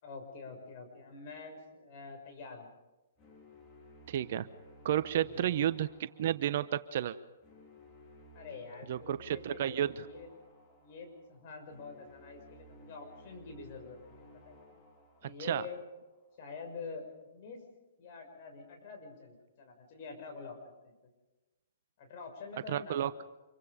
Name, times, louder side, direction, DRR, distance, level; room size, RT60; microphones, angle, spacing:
voice 1, 0.0-2.7 5.3-5.5 8.3-10.3 10.8-14.8 15.2-15.9 16.4-17.6 18.0-20.9 22.0-23.1, left 4 dB, 45° left, 4 dB, 6.3 m, -46 dB
sound 1, 3.2-16.3, equal, 25° left, 4.8 m, -57 dB
voice 2, 4.1-4.5 4.8-7.2 8.9-10.0 15.4-15.7 22.7-23.2, right 11 dB, 55° right, 13 dB, 0.9 m, -32 dB
27.0 x 23.5 x 5.2 m, 1.1 s
hypercardioid pair, 135°, 0 cm